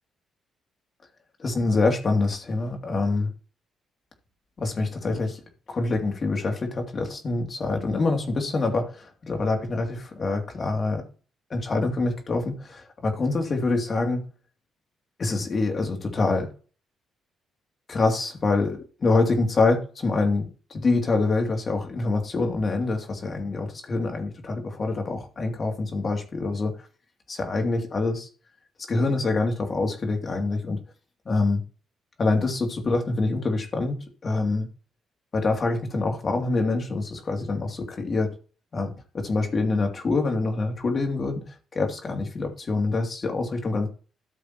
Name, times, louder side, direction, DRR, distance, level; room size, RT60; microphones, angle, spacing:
voice 1, 1.4-3.3 4.6-5.4 5.7-11.0 11.5-14.2 15.2-16.5 17.9-26.7 27.3-28.3 28.9-30.8 31.2-31.6 32.2-34.7 35.3-38.3 38.7-41.4 41.7-43.9, left 3 dB, 40° left, 3.0 m, -25 dB
14.0 x 6.9 x 3.1 m
cardioid pair, 90°, 0 cm